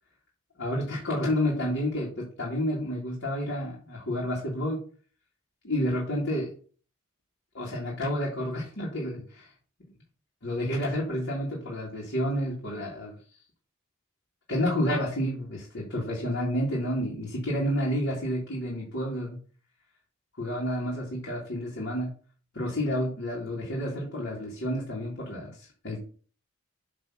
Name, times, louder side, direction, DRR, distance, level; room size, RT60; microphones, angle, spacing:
voice 1, 0.6-4.8 5.6-6.5 7.5-9.5 10.4-13.2 14.5-19.4 20.4-22.1 22.5-26.0, equal, 65° left, -5 dB, 2.2 m, -30 dB
7.7 x 3.4 x 6.2 m, 0.42 s
head